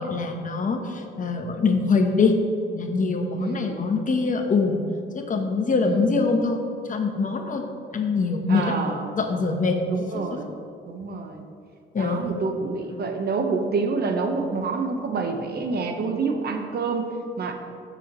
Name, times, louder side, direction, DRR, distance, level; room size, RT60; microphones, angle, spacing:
voice 1, 0.0-2.3 2.7-4.8 5.1-6.6 6.8-7.6 7.9-8.8 9.2-9.8 10.1-10.2 11.9-12.3, left 4 dB, 40° left, 4 dB, 1.1 m, -23 dB
voice 2, 3.4-3.8 5.8-6.0 8.5-9.1 9.9-10.5 10.9-11.4 12.0-17.5, right 4 dB, 55° right, 4 dB, 1.1 m, -27 dB
14.5 x 7.0 x 3.1 m, 2.3 s
cardioid pair, 90°, 20 cm